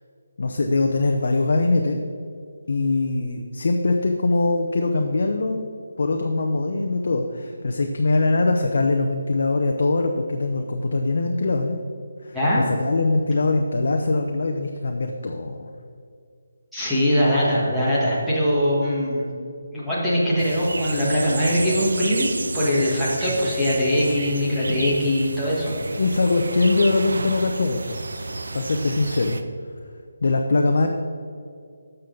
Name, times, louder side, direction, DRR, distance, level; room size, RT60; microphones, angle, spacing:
voice 1, 0.4-2.0 2.7-5.7 6.0-11.8 12.2-15.7 26.0-28.0 28.5-29.4 30.2-30.9, left 3 dB, 55° left, 3 dB, 0.7 m, -22 dB
voice 2, 16.7-19.2 19.7-22.3 22.5-25.8, equal, ahead, -11 dB, 1.5 m, -21 dB
sound 1, 20.4-29.4, right 3 dB, 80° right, 0.7 m, -32 dB
11.5 x 6.7 x 3.9 m, 2.4 s
hypercardioid pair, 175°, 0 cm